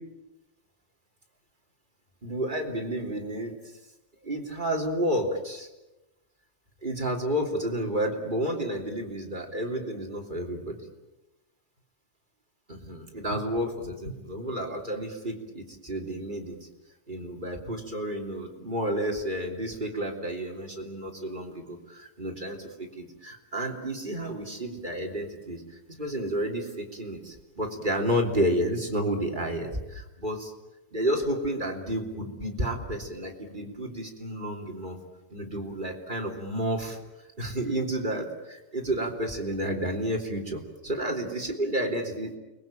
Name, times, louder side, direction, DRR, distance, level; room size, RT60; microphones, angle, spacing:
voice 1, 2.2-3.6 4.2-5.7 6.8-10.8 12.7-16.6 17.1-30.5 30.9-35.0 35.3-37.0 37.4-42.4, right 1 dB, 15° right, 4 dB, 2.6 m, -31 dB
30.0 x 21.5 x 9.1 m, 1.0 s
omnidirectional pair, 5.1 m